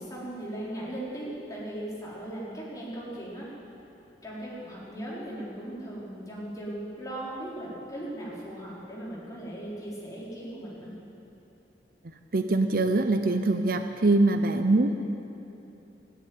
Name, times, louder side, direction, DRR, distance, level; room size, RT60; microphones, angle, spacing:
voice 1, 0.0-3.5 4.2-10.9, right 1 dB, 20° left, -7 dB, 4.2 m, -38 dB
voice 2, 12.3-14.9, right 2 dB, 55° right, 7 dB, 0.7 m, -23 dB
14.0 x 11.0 x 9.4 m, 2.9 s
head